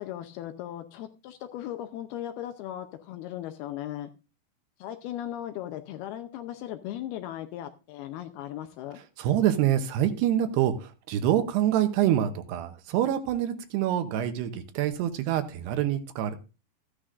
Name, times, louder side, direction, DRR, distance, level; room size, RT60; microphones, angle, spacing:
voice 1, 0.0-4.1 4.8-9.0, left 12 dB, 80° left, 8 dB, 2.4 m, -37 dB
voice 2, 9.2-16.4, right 11 dB, 75° right, 8 dB, 2.9 m, -26 dB
14.0 x 9.9 x 2.5 m, 0.30 s
omnidirectional pair, 5.0 m